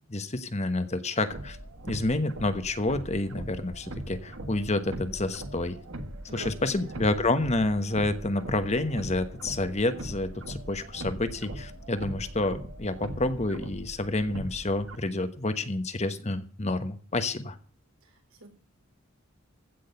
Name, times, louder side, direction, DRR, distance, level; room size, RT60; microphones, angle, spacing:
voice 1, 0.1-1.6 1.9-5.8 6.3-17.6, left 2 dB, 35° left, 10 dB, 1.2 m, -29 dB
sound 1, 1.3-15.0, right 1 dB, 70° right, 1.6 m, -40 dB
voice 2, 6.3-7.3 18.0-18.5, equal, 85° right, 3 dB, 4.3 m, -46 dB
15.5 x 6.4 x 7.9 m, 0.41 s
head